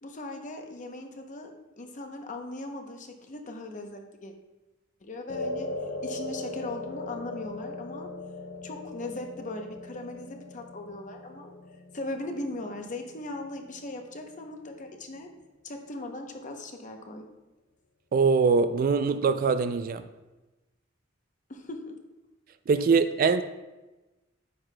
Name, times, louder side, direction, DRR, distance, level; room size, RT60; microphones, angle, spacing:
voice 1, 0.0-1.5 1.8-4.3 5.0-5.7 6.0-8.1 8.6-11.5 11.9-15.3 15.6-17.2 21.5-21.9, left 2 dB, 40° left, 0.8 m, -39 dB
sound 1, 5.3-13.8, left 2 dB, 85° left, 0.6 m, -39 dB
voice 2, 18.1-20.0 22.7-23.4, right 5 dB, 45° right, 0.3 m, -23 dB
9.4 x 5.8 x 2.2 m
head